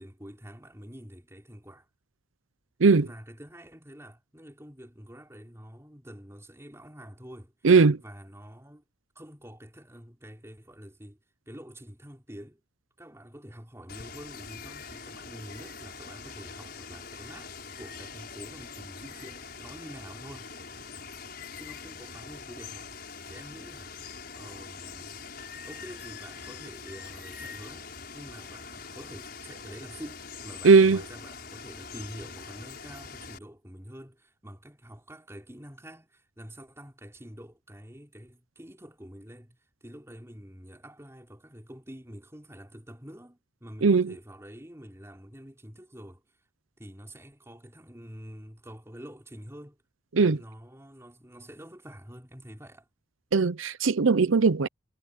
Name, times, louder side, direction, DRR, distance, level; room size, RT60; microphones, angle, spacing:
voice 1, 0.0-1.9 3.0-7.5 8.0-8.8 9.1-11.2 11.5-12.6 13.0-20.5 21.6-23.9 24.3-25.2 25.6-46.2 46.8-49.8 50.3-52.9, equal, 15° right, 4.4 m, -47 dB
voice 2, 7.6-8.0 30.6-31.0 43.8-44.1 50.2-50.4 53.3-54.7, right 4 dB, 80° right, 0.7 m, -19 dB
Water, 13.9-33.4, left 5 dB, 50° left, 7.1 m, -43 dB
head